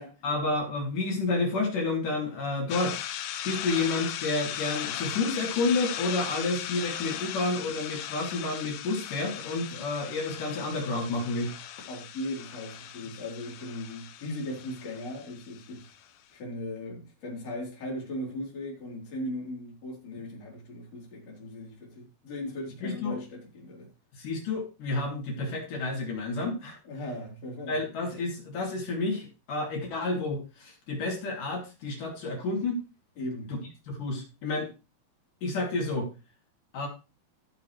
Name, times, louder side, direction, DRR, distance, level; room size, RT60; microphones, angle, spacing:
voice 1, 0.2-3.0 3.4-11.5 22.8-23.2 24.2-26.8 27.7-32.8 33.5-33.6 33.9-34.7 35.4-36.1 36.7-36.9, left 3 dB, 60° left, 4.3 m, -30 dB
sound 1, 2.7-16.0, left 11 dB, 80° left, 2.6 m, -38 dB
voice 2, 11.9-15.9 16.3-23.9 26.8-27.8 33.2-33.5, left 1 dB, 45° left, 4.7 m, -38 dB
16.0 x 7.0 x 3.2 m
omnidirectional pair, 4.2 m